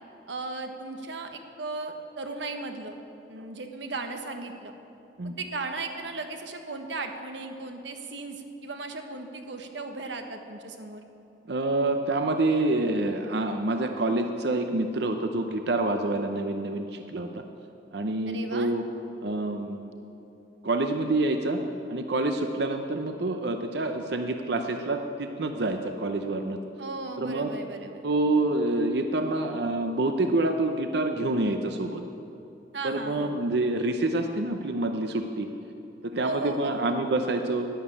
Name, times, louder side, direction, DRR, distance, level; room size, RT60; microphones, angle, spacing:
voice 1, 0.3-3.0 3.3-4.7 5.4-11.0 18.3-18.7 26.8-28.1 32.7-33.3 36.2-37.0, right 3 dB, 90° right, 5 dB, 1.3 m, -36 dB
voice 2, 11.5-17.4 17.9-18.8 19.2-19.9 20.6-21.6 21.9-26.6 27.2-27.5 28.0-32.0 32.8-35.5 36.0-37.7, right 2 dB, 65° right, 6 dB, 0.7 m, -27 dB
11.5 x 11.0 x 8.5 m, 2.9 s
head